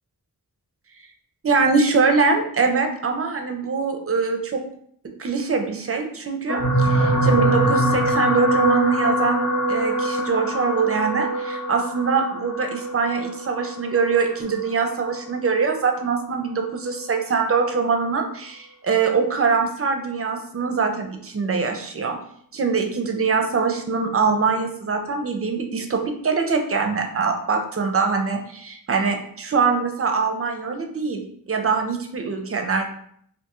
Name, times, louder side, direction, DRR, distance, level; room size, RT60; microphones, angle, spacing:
voice 1, 1.4-4.6 5.2-22.2 22.5-32.9, right 5 dB, 40° right, 4 dB, 0.4 m, -23 dB
sound 1, 6.5-14.9 15.7-15.9 16.2-16.3, right 1 dB, 70° left, 0.8 m, -23 dB
2.5 x 2.3 x 2.9 m, 0.67 s
wide cardioid pair, 60°, 37 cm